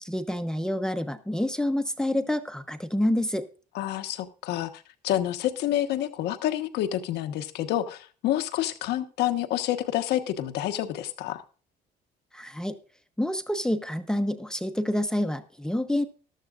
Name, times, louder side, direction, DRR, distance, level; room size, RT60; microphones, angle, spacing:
voice 1, 0.0-3.5 12.3-12.8 13.2-16.0, left 1 dB, 5° left, 8 dB, 0.9 m, -28 dB
voice 2, 3.7-11.4, left 12 dB, 80° left, 9 dB, 1.2 m, -28 dB
14.5 x 12.5 x 2.5 m, 0.37 s
cardioid pair, 110°, 17 cm